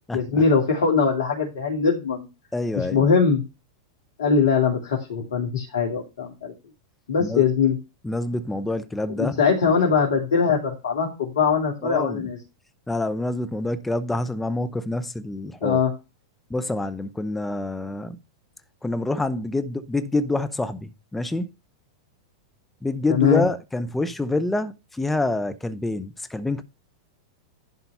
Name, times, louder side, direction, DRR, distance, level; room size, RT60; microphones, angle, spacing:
voice 1, 0.1-2.3 2.8-3.4 4.2-6.5 7.1-7.8 9.2-12.4 15.6-15.9 23.1-23.4, left 5 dB, 70° left, 2.5 m, -21 dB
voice 2, 2.5-3.1 7.2-7.4 8.0-9.4 11.8-12.3 12.9-15.8 16.5-18.2 18.8-21.5 22.8-26.6, left 2 dB, 5° left, 0.9 m, -27 dB
11.0 x 4.1 x 5.5 m
hypercardioid pair, 100°, 2 cm